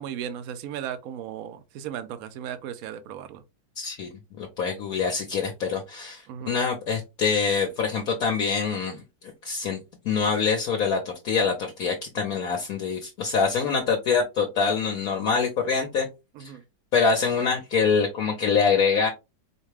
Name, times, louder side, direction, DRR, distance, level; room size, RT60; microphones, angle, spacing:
voice 1, 0.0-3.4 6.3-6.6 16.3-16.6, right 9 dB, 65° right, 0.9 m, -36 dB
voice 2, 3.8-4.1 4.4-9.0 9.4-9.8 10.0-16.1 16.4-16.5 16.9-19.1, left 5 dB, 60° left, 1.1 m, -25 dB
4.7 x 2.2 x 3.2 m
omnidirectional pair, 1.9 m